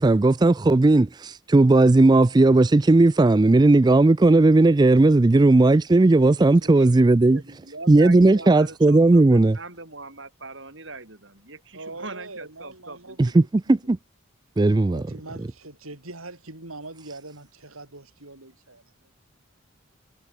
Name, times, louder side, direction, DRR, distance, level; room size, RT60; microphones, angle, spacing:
voice 1, 0.0-7.4 7.9-9.6 13.2-13.4 13.7-14.0 14.6-15.0, right 2 dB, 20° right, 0.3 m, -16 dB
voice 2, 7.3-13.9, right 3 dB, 60° right, 6.8 m, -41 dB
voice 3, 11.7-13.2 14.8-18.8, right 2 dB, 85° right, 6.6 m, -42 dB
head